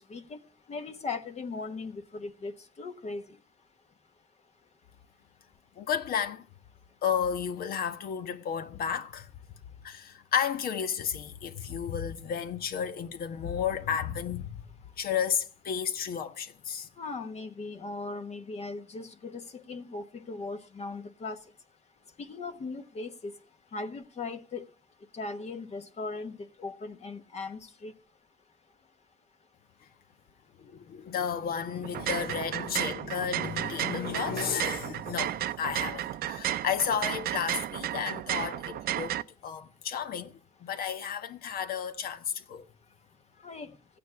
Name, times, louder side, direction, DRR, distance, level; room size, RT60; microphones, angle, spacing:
voice 1, 0.7-2.5 2.8-3.2 17.0-21.4 22.2-23.3 23.7-24.6 25.1-27.9 43.4-43.7, left 3 dB, 40° left, 1.4 m, -38 dB
voice 2, 5.8-6.5 7.0-9.3 9.8-14.6 15.0-16.9 30.6-40.3 40.6-42.7, left 7 dB, 60° left, 1.4 m, -32 dB
sound 1, 31.8-39.2, right 13 dB, 65° right, 0.7 m, -33 dB
15.5 x 9.3 x 7.0 m
cardioid pair, 110°, 17 cm